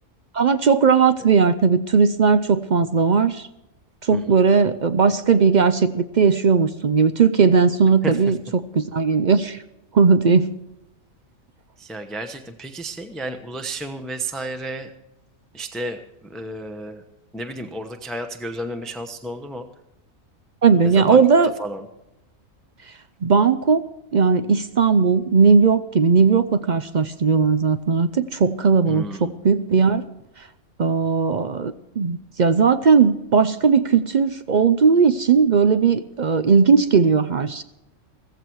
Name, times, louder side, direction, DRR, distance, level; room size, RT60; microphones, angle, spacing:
voice 1, 0.3-3.5 4.0-9.6 9.9-10.5 20.6-21.5 23.2-23.8 24.1-30.0 30.8-37.6, right 5 dB, 55° right, 12 dB, 0.5 m, -17 dB
voice 2, 11.8-14.9 15.5-16.0 16.3-17.0 17.3-19.7 20.8-21.2 21.6-21.9 28.9-29.3, right 1 dB, ahead, 6 dB, 0.8 m, -32 dB
15.5 x 15.0 x 4.6 m, 0.92 s
omnidirectional pair, 1.4 m